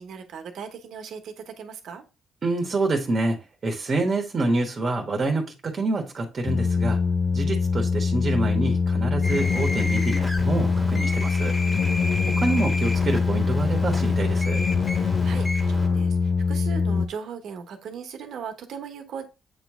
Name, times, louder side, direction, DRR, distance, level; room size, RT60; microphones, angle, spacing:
voice 1, 0.0-2.0 11.6-12.2 14.9-19.2, right 6 dB, 70° right, 1.2 m, -38 dB
voice 2, 2.4-3.4 3.6-7.0 7.3-11.5 12.4-14.6, right 2 dB, 40° right, 1.3 m, -27 dB
sound 1, 6.5-17.1, left 5 dB, 60° left, 0.6 m, -23 dB
sound 2, 9.2-15.9, left 1 dB, 20° left, 1.8 m, -33 dB
Organ, 9.9-16.5, left 2 dB, 75° left, 1.8 m, -46 dB
8.0 x 3.1 x 3.7 m
cardioid pair, 90°, 0 cm